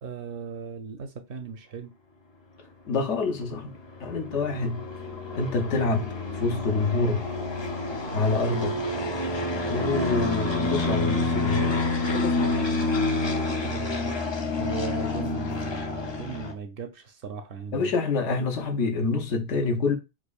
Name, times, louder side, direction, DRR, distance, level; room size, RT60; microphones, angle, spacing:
voice 1, 0.0-2.0 13.6-14.1 14.6-17.9, right 6 dB, 60° right, 0.6 m, -37 dB
voice 2, 2.9-4.8 5.4-7.3 8.1-8.8 9.7-12.6 17.7-20.0, left 3 dB, 80° left, 1.1 m, -27 dB
sound 1, 3.2-16.5, left 2 dB, 45° left, 0.3 m, -28 dB
4.8 x 2.4 x 2.3 m
omnidirectional pair, 1.2 m